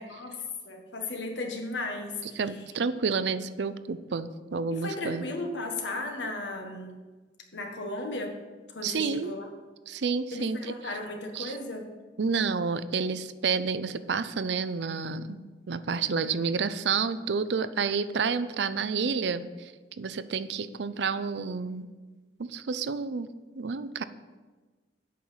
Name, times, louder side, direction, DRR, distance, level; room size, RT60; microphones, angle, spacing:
voice 1, 0.0-2.4 4.7-7.0 7.5-8.4 8.7-9.5 10.3-11.9, left 2 dB, 85° left, 3 dB, 1.5 m, -35 dB
voice 2, 2.4-5.3 8.8-9.3 9.9-10.7 11.3-11.5 12.2-19.7 20.0-21.9 22.4-23.3 23.6-24.0, right 5 dB, 70° right, 14 dB, 0.5 m, -30 dB
8.4 x 5.7 x 7.9 m, 1.3 s
head